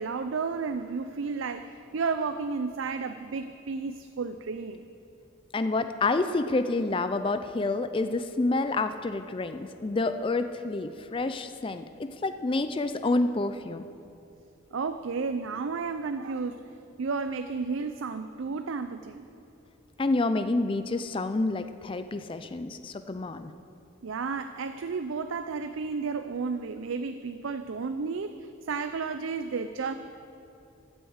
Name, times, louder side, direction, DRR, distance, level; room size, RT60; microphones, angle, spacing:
voice 1, 0.0-4.9 14.7-16.7 17.0-19.2 24.0-29.9, right 4 dB, 70° right, 9 dB, 0.5 m, -32 dB
voice 2, 5.5-13.8 20.0-23.5, left 2 dB, 25° left, 10 dB, 0.4 m, -28 dB
13.5 x 8.0 x 8.0 m, 2.7 s
head